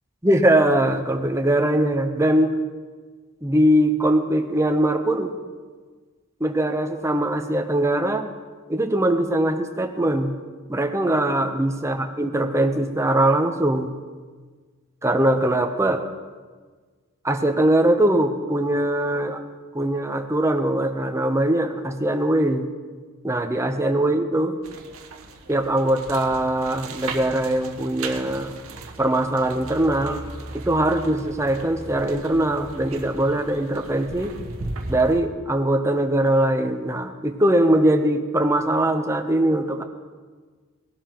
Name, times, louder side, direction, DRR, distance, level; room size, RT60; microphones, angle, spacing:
voice 1, 0.2-2.5 3.4-5.4 6.4-8.3 8.7-10.3 10.7-13.9 15.0-16.0 17.2-19.4 19.7-22.6 23.2-24.5 25.5-28.5 29.0-30.2 30.5-34.3 34.9-39.8, right 1 dB, 15° right, 5 dB, 0.8 m, -21 dB
sound 1, 24.6-35.2, right 2 dB, 75° right, 1.1 m, -37 dB
19.0 x 12.0 x 3.0 m, 1.5 s
head